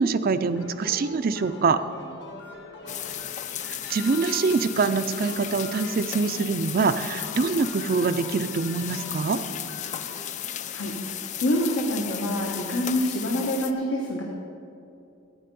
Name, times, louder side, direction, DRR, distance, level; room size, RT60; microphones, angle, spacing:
voice 1, 0.0-1.8 3.9-9.4, right 4 dB, 45° right, 11 dB, 0.4 m, -24 dB
sound 1, 0.5-11.0 12.1-12.8, left 3 dB, 55° left, 1.4 m, -44 dB
sound 2, 2.9-13.7, left 10 dB, 35° left, 0.4 m, -35 dB
voice 2, 10.7-14.2, left 1 dB, 75° left, -1 dB, 1.2 m, -27 dB
12.0 x 9.0 x 5.3 m, 2.6 s
head